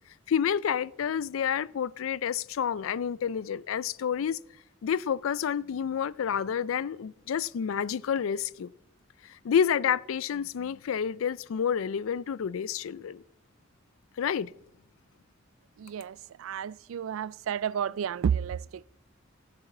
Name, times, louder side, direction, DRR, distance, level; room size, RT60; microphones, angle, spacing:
voice 1, 0.3-4.4 4.8-8.7 9.2-13.2 14.2-14.5, left 8 dB, 85° left, 0.4 m, -29 dB
voice 2, 15.8-18.8, right 8 dB, 85° right, 0.3 m, -31 dB
14.5 x 6.9 x 6.0 m
head